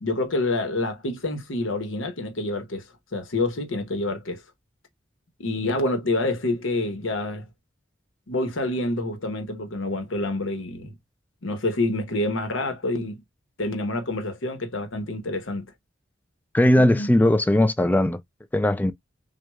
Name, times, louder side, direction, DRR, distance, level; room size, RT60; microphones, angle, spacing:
voice 1, 0.0-2.8 3.1-4.4 5.4-7.4 8.3-10.9 11.4-13.2 13.6-15.7 16.8-17.1, left 2 dB, 90° left, 1.0 m, -27 dB
voice 2, 16.5-18.2 18.5-18.9, left 1 dB, 10° left, 0.3 m, -19 dB
6.2 x 2.3 x 2.3 m
head